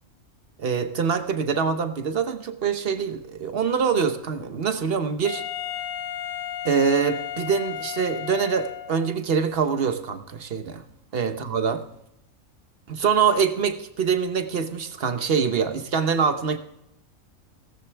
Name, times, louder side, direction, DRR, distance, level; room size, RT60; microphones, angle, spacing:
voice 1, 0.6-5.4 6.6-10.8 11.1-11.8 12.9-16.6, right 6 dB, 50° right, 9 dB, 1.1 m, -24 dB
Wind instrument woodwind instrument, 5.2-9.2, left 11 dB, 80° left, 1.2 m, -34 dB
17.5 x 14.5 x 3.4 m, 0.84 s
omnidirectional pair, 1.4 m